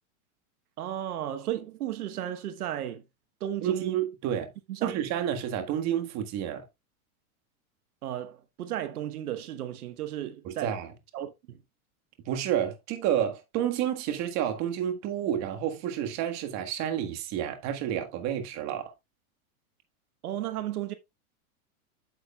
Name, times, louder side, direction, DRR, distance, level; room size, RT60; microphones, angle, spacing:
voice 1, 0.8-3.0 3.4-4.0 4.7-4.9 8.0-10.8 11.1-11.6 20.2-20.9, right 11 dB, 90° right, 1.1 m, -34 dB
voice 2, 3.6-4.5 4.8-6.7 10.4-10.9 12.2-18.9, right 10 dB, 40° right, 1.6 m, -30 dB
8.8 x 7.8 x 2.3 m
supercardioid pair, 140°, 43 cm